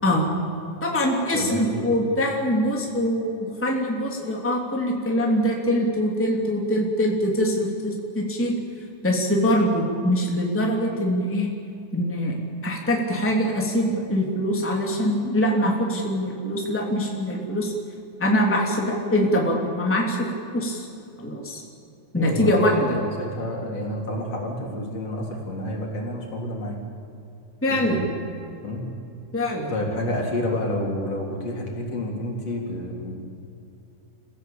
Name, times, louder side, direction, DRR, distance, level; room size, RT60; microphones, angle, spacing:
voice 1, 0.8-8.5 9.0-11.5 11.9-12.3 12.6-17.7 18.2-20.3 20.5-20.9 21.2-21.6 22.1-23.0 27.6-28.0 29.3-29.7, equal, 5° left, -1 dB, 2.9 m, -23 dB
voice 2, 1.3-2.0 22.1-26.8 27.7-28.1 28.6-29.0 29.7-33.1, left 1 dB, 55° left, -1 dB, 4.7 m, -29 dB
29.0 x 16.5 x 8.8 m, 2.7 s
omnidirectional pair, 3.4 m